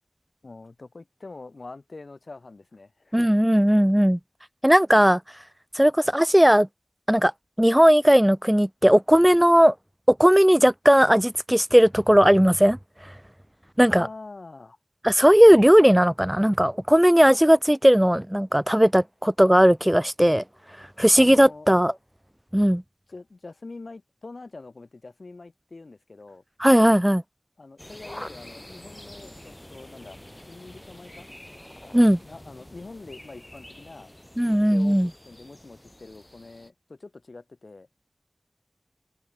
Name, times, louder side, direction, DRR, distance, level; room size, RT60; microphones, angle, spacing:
voice 1, 0.4-3.4 13.9-14.8 21.1-21.7 23.1-26.4 27.6-30.2 30.5-31.3 31.8-34.1 34.4-37.9, left 3 dB, 80° left, 5.1 m, -44 dB
voice 2, 3.1-4.2 4.6-5.2 5.8-6.7 7.1-7.3 7.6-9.7 10.1-12.8 13.8-14.1 15.0-20.4 21.0-21.9 22.5-22.8 26.6-27.2 31.9-32.2 34.4-35.1, equal, 10° right, 0.3 m, -17 dB
sound 1, 27.8-36.7, left 1 dB, 20° left, 1.7 m, -46 dB
wide cardioid pair, 45°, 0 cm